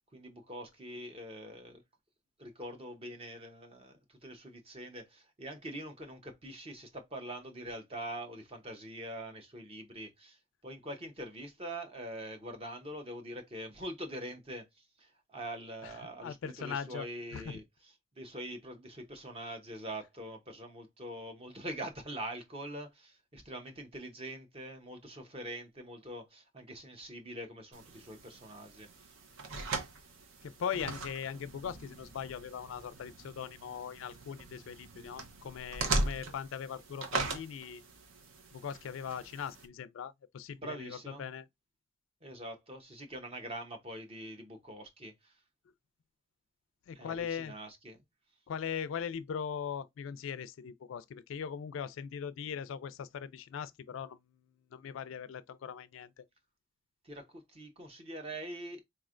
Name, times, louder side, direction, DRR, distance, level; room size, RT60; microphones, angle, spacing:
voice 1, 0.1-1.8 2.4-14.7 15.0-17.6 18.2-29.1 40.6-41.3 42.2-45.3 46.9-48.0 57.0-58.8, right 1 dB, 25° right, 0.7 m, -44 dB
voice 2, 16.2-17.1 17.3-17.6 30.4-37.8 38.5-41.4 46.9-47.5 48.5-54.2 54.7-56.2, left 7 dB, 70° left, 0.3 m, -40 dB
sound 1, 27.7-39.7, right 2 dB, 75° right, 0.8 m, -40 dB
4.2 x 3.1 x 2.4 m
head